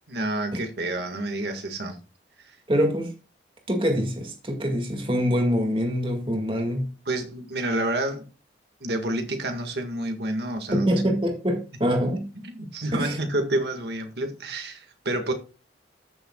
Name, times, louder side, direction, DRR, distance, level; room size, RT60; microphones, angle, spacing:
voice 1, 0.1-2.0 2.4-2.6 7.1-8.2 8.8-10.9 11.9-12.0 12.4-15.3, right 1 dB, 65° right, 1.8 m, -29 dB
voice 2, 2.7-3.1 3.7-6.9 10.7-12.3 12.9-13.2, equal, 30° right, 2.0 m, -24 dB
14.0 x 6.9 x 2.3 m
head